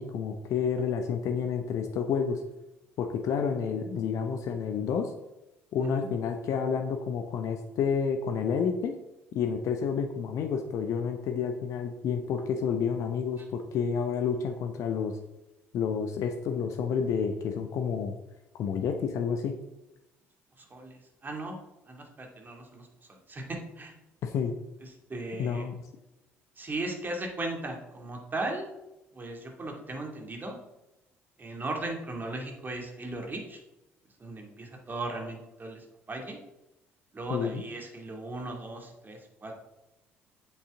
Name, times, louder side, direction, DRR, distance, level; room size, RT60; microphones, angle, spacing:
voice 1, 0.0-2.4 3.0-5.1 5.7-9.0 9.3-15.2 15.7-18.2 18.6-19.6 24.2-24.5 25.4-25.8 37.3-37.6, left 6 dB, 55° left, 5 dB, 0.8 m, -30 dB
voice 2, 20.7-21.6 21.9-23.9 25.1-25.6 26.6-28.7 29.1-30.6 31.4-33.6 34.2-36.4 37.1-39.5, right 2 dB, 30° right, 2 dB, 2.5 m, -37 dB
8.4 x 8.2 x 3.7 m, 0.95 s
figure-of-eight pair, 50°, 7 cm